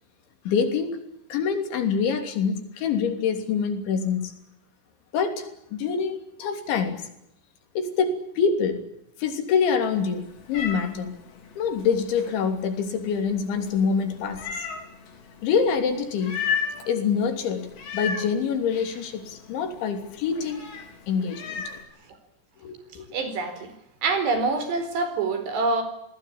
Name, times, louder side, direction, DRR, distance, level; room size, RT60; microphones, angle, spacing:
voice 1, 0.5-1.0 1.3-4.3 5.1-7.1 7.8-8.8 9.2-11.2 11.6-14.6 15.4-16.4 16.9-20.7 21.1-21.7 22.6-23.2, left 6 dB, 90° left, 6 dB, 5.5 m, -26 dB
Meow, 9.8-21.8, left 6 dB, 75° left, 6.6 m, -36 dB
voice 2, 23.1-23.7 24.0-25.8, right 3 dB, 70° right, 9 dB, 6.4 m, -25 dB
29.0 x 19.5 x 8.7 m, 0.79 s
omnidirectional pair, 5.1 m